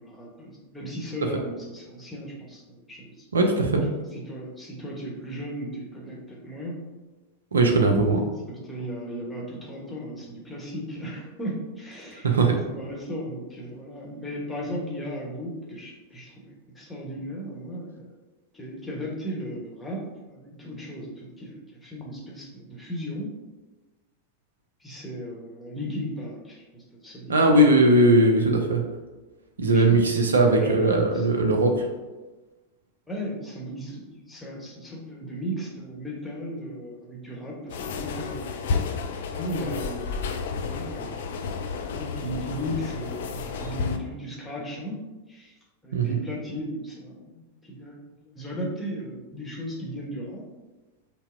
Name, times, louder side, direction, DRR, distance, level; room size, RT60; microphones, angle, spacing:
voice 1, 0.0-3.3 4.1-6.7 8.6-18.2 18.5-20.0 20.3-23.3 24.8-27.8 29.7-30.1 30.6-31.3 33.1-38.5 39.3-40.2 40.7-41.3 41.8-44.9 45.3-45.5 45.8-50.4, equal, 5° left, -4 dB, 0.9 m, -36 dB
voice 2, 3.3-3.8 7.5-8.3 12.2-12.6 27.3-28.8 29.6-31.8 45.9-46.2, right 2 dB, 70° right, 3 dB, 0.5 m, -19 dB
sound 1, 37.7-44.0, left 5 dB, 60° left, 0.3 m, -31 dB
5.4 x 2.0 x 2.5 m, 1.2 s
figure-of-eight pair, 90°, 0 cm